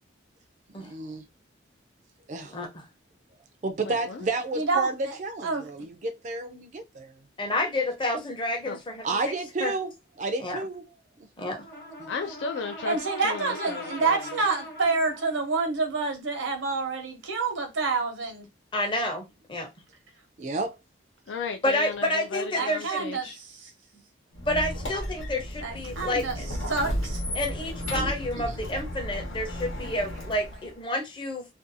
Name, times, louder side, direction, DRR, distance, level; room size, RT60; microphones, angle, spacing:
voice 1, 0.7-1.2 2.3-2.6 3.6-7.2 9.0-9.9 10.2-10.8 11.2-11.3 12.0-12.1 20.4-20.8 27.9-28.1, right 3 dB, 40° right, 0.4 m, -31 dB
voice 2, 2.5-2.8 7.4-9.0 9.6-9.7 10.4-10.6 11.4-11.6 18.7-19.7 21.6-23.0 24.5-26.4 27.3-31.5, left 1 dB, 25° left, 0.6 m, -29 dB
voice 3, 3.8-4.3 8.7-8.8 12.1-13.0 13.2-14.4 21.3-23.4, left 5 dB, 70° left, 0.4 m, -35 dB
voice 4, 4.5-5.2 5.4-5.6 12.8-18.5 22.5-23.7 25.6-26.4 26.7-27.2, right 4 dB, 85° right, 0.8 m, -28 dB
Brass instrument, 11.4-15.5, equal, 55° left, 0.9 m, -40 dB
Squeak, 24.3-30.7, equal, 85° left, 0.9 m, -34 dB
2.5 x 2.3 x 2.6 m
head